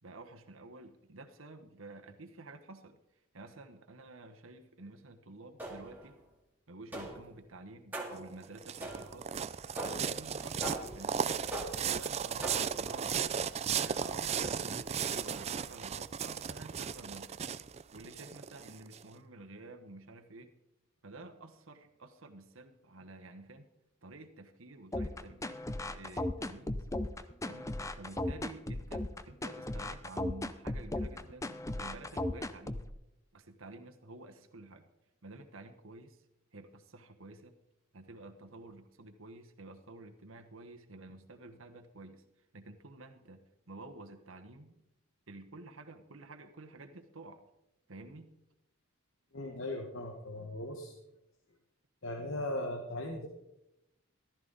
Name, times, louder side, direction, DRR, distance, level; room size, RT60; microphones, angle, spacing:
voice 1, 0.0-3.0 3.3-6.2 6.7-9.4 9.9-11.5 11.8-13.3 13.7-17.3 17.9-20.5 21.0-23.7 24.0-25.6 25.9-26.9 27.4-32.8 33.3-34.9 35.2-36.2 36.5-37.6 37.9-42.2 42.5-44.8 45.3-47.4 47.9-48.3, right 2 dB, 70° right, 5 dB, 1.2 m, -51 dB
sound 1, 5.6-6.1 6.9-7.4 7.9-8.3 8.8-9.3 9.8-10.2 10.6-11.1 11.5-12.0 12.4-12.9, right 1 dB, 10° right, 2.2 m, -41 dB
sound 2, 8.2-19.0, right 7 dB, 30° right, 0.4 m, -36 dB
sound 3, 24.9-32.9, left 1 dB, 15° left, 0.6 m, -36 dB
voice 2, 49.3-50.9 52.0-53.3, left 1 dB, 65° left, 2 dB, 1.5 m, -38 dB
14.5 x 13.0 x 4.0 m, 0.86 s
head